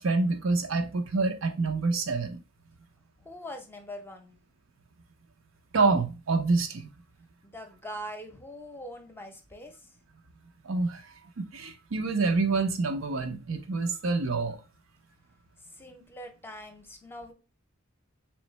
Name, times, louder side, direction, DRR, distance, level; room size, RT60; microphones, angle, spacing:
voice 1, 0.0-2.4 5.7-6.9 10.6-11.0 11.4-14.6, right 3 dB, 70° right, 0.6 m, -27 dB
voice 2, 3.2-4.4 7.4-9.9 15.7-17.3, equal, 10° left, 0.7 m, -43 dB
3.7 x 3.1 x 3.1 m
head